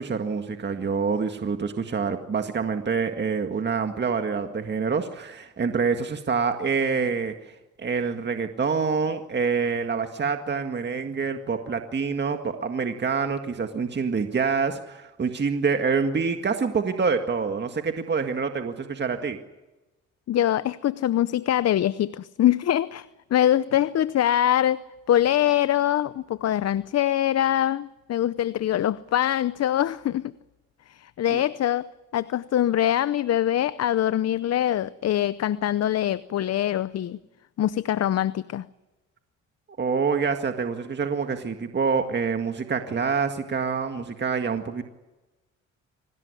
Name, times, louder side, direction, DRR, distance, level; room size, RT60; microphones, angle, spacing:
voice 1, 0.0-19.4 31.3-31.4 39.8-44.8, right 5 dB, 35° right, 6 dB, 1.9 m, -26 dB
voice 2, 20.3-23.1 23.3-30.3 30.9-31.9 32.1-37.2 37.6-38.6, left 11 dB, 55° left, 16 dB, 0.8 m, -23 dB
25.0 x 18.5 x 9.8 m, 1.1 s
cardioid pair, 90°, 30 cm